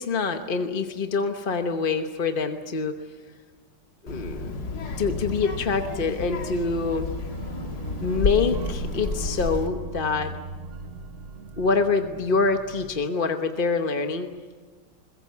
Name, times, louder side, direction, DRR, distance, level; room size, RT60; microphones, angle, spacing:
voice 1, 0.0-2.9 4.0-4.5 5.0-7.1 8.0-10.3 11.6-14.3, left 4 dB, 35° left, 6 dB, 0.9 m, -25 dB
Child speech kid speaking, 4.1-9.7, left 3 dB, 55° left, 2.3 m, -31 dB
sound 1, 7.3-12.9, right 5 dB, 40° right, 1.0 m, -39 dB
22.0 x 21.0 x 8.3 m, 1.4 s
omnidirectional pair, 2.0 m